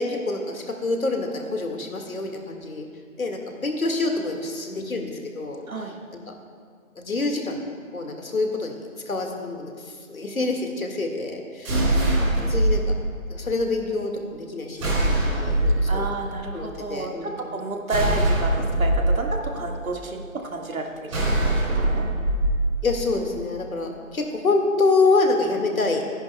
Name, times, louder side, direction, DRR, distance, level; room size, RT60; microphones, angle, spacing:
voice 1, 0.0-2.9 3.2-5.6 6.3-6.4 7.0-11.7 12.5-12.8 13.3-16.1 16.5-17.4 22.8-26.0, left 3 dB, 80° left, 3 dB, 2.0 m, -26 dB
voice 2, 5.7-6.0 11.7-12.4 15.9-20.9 21.2-22.1, right 3 dB, 75° right, 1 dB, 1.9 m, -31 dB
sound 1, 11.6-12.8 14.8-15.8 17.9-19.0 21.1-22.6, right 1 dB, 20° right, 3.1 m, -22 dB
24.0 x 10.5 x 2.3 m, 2.1 s
figure-of-eight pair, 170°, 41 cm